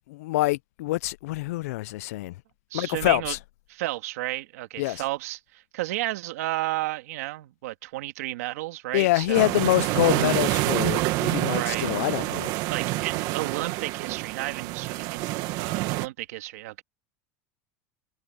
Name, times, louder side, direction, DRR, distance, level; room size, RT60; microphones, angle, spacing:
voice 1, 0.1-2.3 2.7-3.4 4.8-5.0 8.9-12.5, left 18 dB, 85° left, 0.4 m, -25 dB
voice 2, 2.7-3.4 3.7-9.6 11.4-11.9 12.7-16.8, right 17 dB, 85° right, 2.1 m, -32 dB
sound 1, 9.3-16.1, right 19 dB, 55° right, 1.5 m, -27 dB
supercardioid pair, 140°, 8 cm